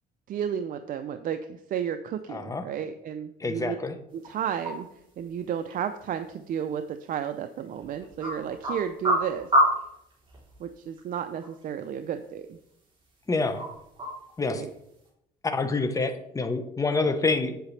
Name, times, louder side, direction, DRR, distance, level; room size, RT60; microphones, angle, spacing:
voice 1, 0.3-3.8 4.1-4.9 5.2-9.5 10.6-12.6 14.5-14.7 17.0-17.1, right 8 dB, 55° right, 8 dB, 0.5 m, -32 dB
voice 2, 2.3-2.6 3.4-3.9 13.3-13.6 14.4-14.6 15.4-17.6, left 3 dB, 20° left, 8 dB, 1.0 m, -27 dB
sound 1, 4.1-15.1, equal, 30° right, 3.5 m, -32 dB
8.3 x 7.9 x 3.3 m, 0.78 s
cardioid pair, 110°, 17 cm